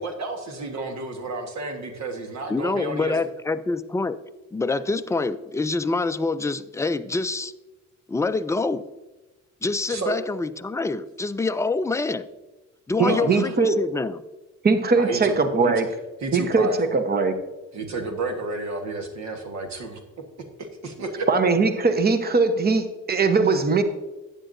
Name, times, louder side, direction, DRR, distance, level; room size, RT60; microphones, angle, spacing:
voice 1, 0.0-3.2 9.9-10.2 13.1-13.6 14.9-15.3 15.6-15.7 16.2-17.0 17.7-20.0 20.8-21.3, right 3 dB, 65° right, 5 dB, 1.4 m, -31 dB
voice 2, 2.5-4.2 4.5-7.5 8.1-8.9 9.6-12.3 12.9-14.2, left 3 dB, 10° left, 11 dB, 0.4 m, -26 dB
voice 3, 13.0-13.8 14.6-15.9 16.3-17.3 21.3-23.8, right 4 dB, 30° right, 8 dB, 1.0 m, -20 dB
12.5 x 9.1 x 2.6 m, 1.1 s
cardioid pair, 90°, 30 cm